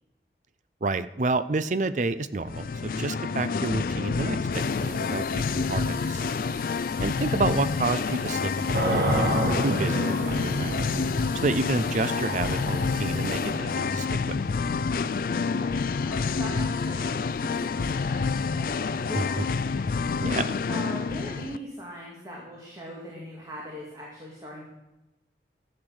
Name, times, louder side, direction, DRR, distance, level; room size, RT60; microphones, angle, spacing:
voice 1, 0.8-6.4 7.0-10.8 11.4-14.4 19.1-19.5 20.2-20.6, right 3 dB, 45° right, 13 dB, 0.5 m, -30 dB
Singing, 2.4-21.6, left 4 dB, 50° left, 0.3 m, -28 dB
sound 1, 4.5-13.5, left 2 dB, 5° left, 4.2 m, -47 dB
sound 2, 8.7-15.6, right 1 dB, 60° right, 1.8 m, -30 dB
voice 2, 15.4-19.9 20.7-24.6, equal, 20° right, -3 dB, 2.1 m, -40 dB
12.0 x 7.9 x 6.4 m, 0.98 s
head